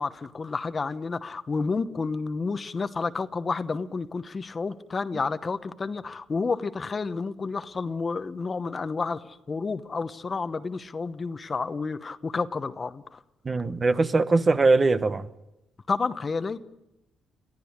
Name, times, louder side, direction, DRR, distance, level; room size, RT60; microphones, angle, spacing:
voice 1, 0.0-13.2 15.9-16.6, left 4 dB, 35° left, 1.0 m, -30 dB
voice 2, 13.4-15.3, right 3 dB, 30° right, 1.0 m, -21 dB
22.5 x 14.5 x 9.8 m
cardioid pair, 90°, 0 cm